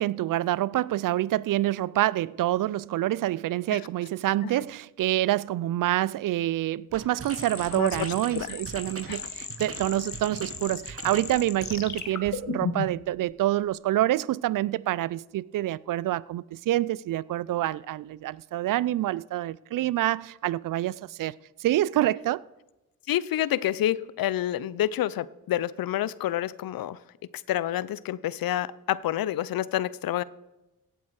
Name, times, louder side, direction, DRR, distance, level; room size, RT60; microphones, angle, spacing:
voice 1, 0.0-22.4, right 14 dB, 55° right, 0.4 m, -27 dB
sound 1, 6.9-12.3, right 5 dB, 35° right, 1.3 m, -42 dB
sound 2, 7.2-13.1, left 5 dB, 45° left, 1.6 m, -36 dB
voice 2, 7.7-8.6 9.1-9.2 23.1-27.0 27.5-30.2, left 12 dB, 60° left, 0.6 m, -28 dB
16.5 x 8.2 x 4.8 m
supercardioid pair, 50°, 39 cm